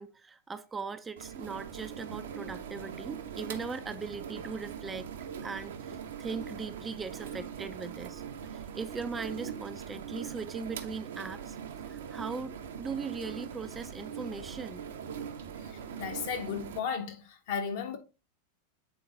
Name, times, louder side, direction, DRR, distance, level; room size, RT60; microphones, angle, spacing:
voice 1, 0.0-5.1 5.4-8.2 8.5-14.8, right 5 dB, 15° right, 0.5 m, -39 dB
sound 1, 1.2-16.8, right 7 dB, 60° right, 0.8 m, -41 dB
voice 2, 16.0-18.0, left 6 dB, 50° left, 1.2 m, -34 dB
7.7 x 3.8 x 3.9 m
figure-of-eight pair, 90°, 0 cm